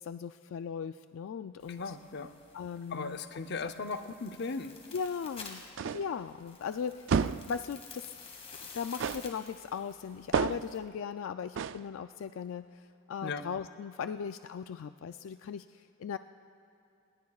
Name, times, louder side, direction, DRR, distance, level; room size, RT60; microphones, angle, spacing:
voice 1, 0.0-1.9 2.5-3.2 4.9-5.6 5.9-8.1 8.7-16.2, left 6 dB, 85° left, 10 dB, 0.3 m, -38 dB
sound 1, 1.6-10.8, left 4 dB, 30° left, 2.0 m, -51 dB
voice 2, 1.8-2.3 2.9-4.8 13.2-13.4, left 4 dB, 60° left, 8 dB, 0.7 m, -37 dB
sound 2, 5.8-6.2 7.1-7.6 9.0-9.4 10.3-10.8 11.6-11.9, right 6 dB, 70° right, 0.4 m, -30 dB
27.0 x 20.0 x 2.4 m, 2.7 s
head